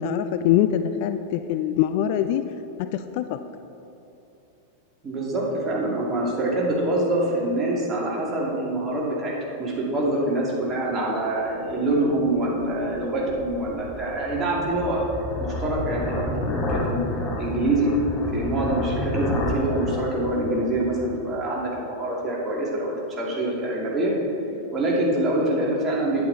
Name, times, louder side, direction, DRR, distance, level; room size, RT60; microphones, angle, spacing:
voice 1, 0.0-2.4 2.8-3.4, left 10 dB, 45° left, 10 dB, 0.3 m, -23 dB
voice 2, 5.0-15.0 15.4-17.0 17.4-17.9 18.3-24.1 24.7-26.2, right 1 dB, 20° right, -4 dB, 2.2 m, -25 dB
sound 1, 12.0-21.5, left 2 dB, 25° left, 1.3 m, -31 dB
8.7 x 8.6 x 3.9 m, 2.8 s
figure-of-eight pair, 90°, 0 cm